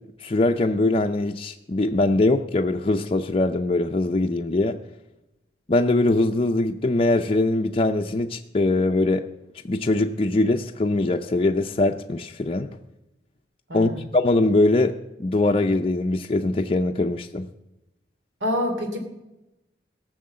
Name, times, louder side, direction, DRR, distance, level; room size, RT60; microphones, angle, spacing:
voice 1, 0.2-4.8 5.7-9.3 9.6-12.7 13.7-17.5, left 2 dB, 30° left, 3 dB, 0.5 m, -22 dB
voice 2, 13.7-14.1 18.4-19.0, left 1 dB, 85° right, 5 dB, 2.8 m, -26 dB
17.0 x 6.3 x 7.6 m, 0.95 s
head